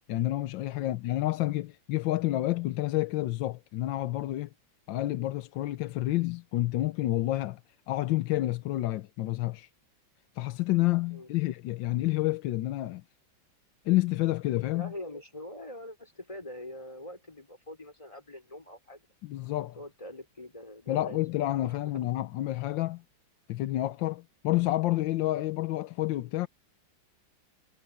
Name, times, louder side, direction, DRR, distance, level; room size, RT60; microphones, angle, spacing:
voice 1, 0.1-4.5 4.9-7.6 7.9-9.7 10.3-13.0 13.8-14.9 19.2-19.8 20.9-23.0 23.5-26.5, left 16 dB, 75° left, 1.4 m, -29 dB
voice 2, 14.7-19.0 19.8-21.2 21.6-21.7, left 1 dB, 15° left, 4.9 m, -44 dB
omnidirectional pair, 2.2 m